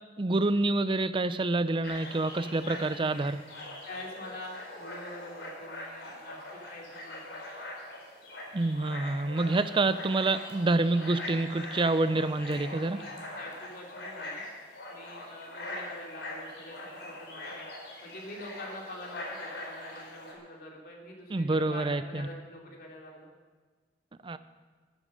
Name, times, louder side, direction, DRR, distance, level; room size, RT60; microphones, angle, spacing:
voice 1, 0.2-3.4 8.5-13.0 21.3-22.3 24.2-24.4, right 2 dB, 30° right, 13 dB, 0.5 m, -27 dB
sound 1, 1.8-20.3, left 1 dB, 80° left, 4.0 m, -42 dB
voice 2, 3.8-6.4 6.7-7.4 12.7-13.1 13.4-14.4 14.9-17.7 18.0-23.3, left 1 dB, 60° left, -1 dB, 2.9 m, -45 dB
13.5 x 11.0 x 6.6 m, 1.4 s
head